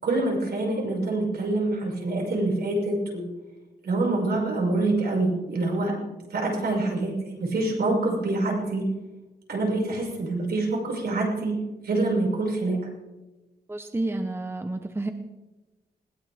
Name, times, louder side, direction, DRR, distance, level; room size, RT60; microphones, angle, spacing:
voice 1, 0.0-3.3 3.8-5.9 6.3-8.9 9.5-11.5 11.8-12.8, right 2 dB, 70° right, -1 dB, 6.3 m, -26 dB
voice 2, 13.7-15.1, right 2 dB, 15° right, 6 dB, 1.1 m, -30 dB
20.5 x 19.0 x 3.7 m, 1.1 s
wide cardioid pair, 120°, 17 cm